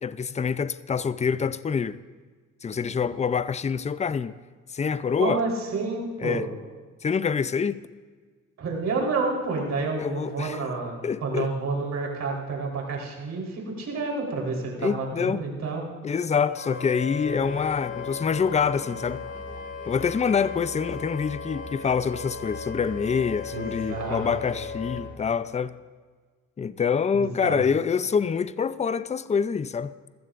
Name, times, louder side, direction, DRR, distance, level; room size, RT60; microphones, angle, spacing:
voice 1, 0.0-2.0 2.6-4.3 4.7-5.4 6.2-6.5 7.0-7.8 10.0-10.6 11.0-11.5 14.8-15.4 16.0-19.3 19.9-25.8 26.6-30.1, left 6 dB, 25° left, 0.5 m, -26 dB
voice 2, 5.2-6.5 8.6-15.8 23.5-24.4 27.1-27.6, right 3 dB, 65° right, 4.0 m, -29 dB
Wind instrument woodwind instrument, 16.5-25.0, left 5 dB, 40° left, 2.0 m, -37 dB
sound 1, 17.2-25.2, left 1 dB, 5° left, 2.0 m, -42 dB
21.5 x 15.0 x 2.6 m
cardioid pair, 90°, 30 cm